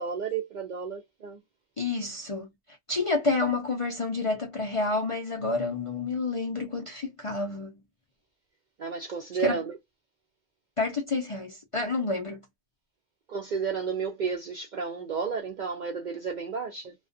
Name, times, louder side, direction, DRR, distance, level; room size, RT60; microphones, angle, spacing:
voice 1, 0.0-1.4 8.8-9.8 13.3-16.9, right 6 dB, 60° right, 0.5 m, -32 dB
voice 2, 1.8-2.5 2.9-7.8 9.4-9.6 10.8-12.4, left 3 dB, 45° left, 0.4 m, -29 dB
2.3 x 2.3 x 2.5 m
omnidirectional pair, 1.2 m